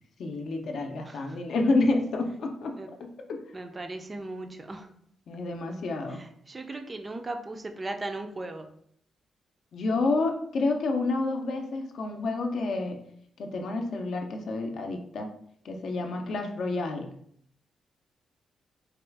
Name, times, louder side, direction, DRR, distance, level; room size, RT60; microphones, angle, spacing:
voice 1, 0.2-2.7 3.3-3.4 5.3-6.2 9.7-13.0 13.4-15.3 15.6-17.1, left 3 dB, 60° left, 4 dB, 0.5 m, -29 dB
voice 2, 1.0-1.4 2.7-2.9 3.5-4.9 6.1-8.7, right 2 dB, 20° right, 5 dB, 0.3 m, -37 dB
4.1 x 2.3 x 3.3 m, 0.65 s
wide cardioid pair, 160°, 0 cm